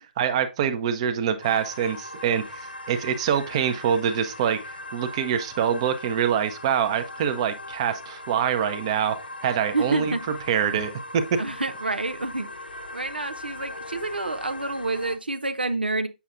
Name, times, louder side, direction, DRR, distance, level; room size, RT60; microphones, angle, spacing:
voice 1, 0.2-9.2 9.4-10.2 10.5-11.2, right 8 dB, 35° right, 0.8 m, -25 dB
sound 1, 1.4-15.2, left 2 dB, 75° left, 0.6 m, -40 dB
voice 2, 9.7-10.2 11.4-12.5 12.7-16.1, right 3 dB, 80° right, 0.7 m, -28 dB
7.1 x 6.4 x 2.5 m
figure-of-eight pair, 130°, 5 cm